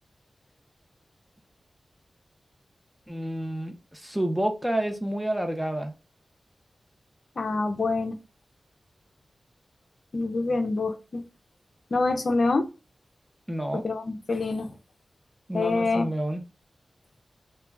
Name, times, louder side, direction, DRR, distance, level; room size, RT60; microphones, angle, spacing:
voice 1, 3.1-5.9 13.5-13.8 15.5-16.4, right 1 dB, 5° right, 0.5 m, -29 dB
voice 2, 7.4-8.2 10.1-11.2 11.9-12.7 13.7-14.7 15.5-16.1, left 3 dB, 50° left, 0.5 m, -26 dB
2.3 x 2.2 x 3.2 m
wide cardioid pair, 105°, 0 cm